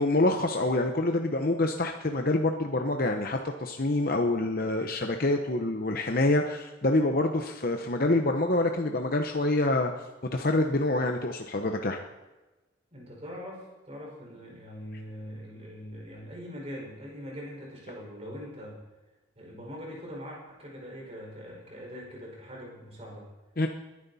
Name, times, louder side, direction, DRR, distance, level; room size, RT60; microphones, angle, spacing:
voice 1, 0.0-9.9 10.3-12.0 23.6-23.7, left 2 dB, 45° left, 4 dB, 0.9 m, -26 dB
voice 2, 12.9-18.8 19.4-23.3, equal, 30° right, -2 dB, 5.1 m, -42 dB
21.5 x 11.0 x 4.2 m, 1.1 s
head